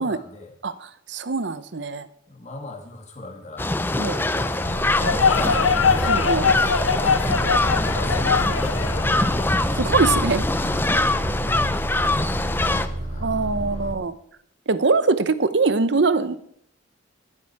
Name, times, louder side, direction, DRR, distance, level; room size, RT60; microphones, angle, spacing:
voice 1, 0.0-0.6 2.3-3.7 4.3-9.8 10.7-13.9, left 2 dB, 35° left, 2 dB, 2.0 m, -39 dB
voice 2, 0.6-2.1 4.0-4.2 6.1-6.4 9.8-10.7 13.2-14.1 14.7-16.4, right 4 dB, 60° right, 14 dB, 0.7 m, -23 dB
sound 1, 3.6-12.9, left 2 dB, 10° left, 0.5 m, -23 dB
sound 2, 4.4-10.2, left 5 dB, 85° left, 0.8 m, -23 dB
sound 3, 4.6-13.9, right 1 dB, 90° right, 1.8 m, -32 dB
12.5 x 11.0 x 4.7 m, 0.70 s
head